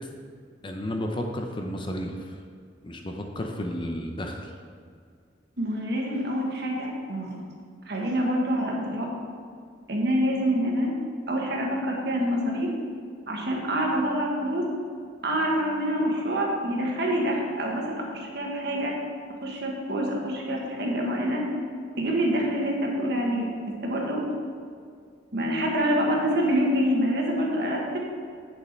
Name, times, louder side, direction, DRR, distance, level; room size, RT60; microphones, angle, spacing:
voice 1, 0.6-2.3 2.8-4.5, left 1 dB, 25° left, 3 dB, 0.7 m, -32 dB
voice 2, 5.6-7.4 7.9-9.1 9.9-10.9 11.3-12.7 13.3-14.6 15.2-18.9 19.4-21.5 22.0-23.5 23.8-24.2 25.3-28.0, equal, 60° right, -1 dB, 1.5 m, -26 dB
8.3 x 6.6 x 4.4 m, 2.2 s
head